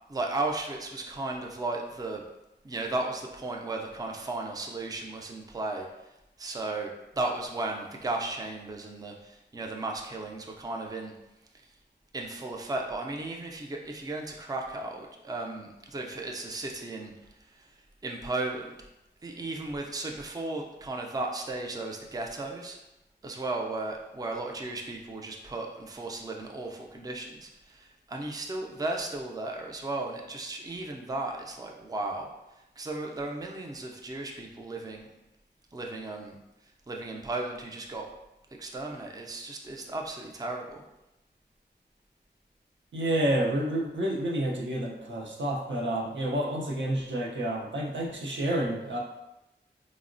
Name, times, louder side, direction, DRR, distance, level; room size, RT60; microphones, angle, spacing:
voice 1, 0.1-2.2 2.6-5.9 6.4-11.1 12.1-17.1 17.6-17.7 18.0-18.7 19.2-22.8 23.2-32.3 32.8-35.1 35.7-36.4 36.9-38.1 38.5-40.8, right 2 dB, 20° right, 1 dB, 0.4 m, -35 dB
voice 2, 42.9-49.0, right 1 dB, 85° right, -2 dB, 0.6 m, -29 dB
3.6 x 2.0 x 2.5 m, 0.93 s
wide cardioid pair, 65°, 19 cm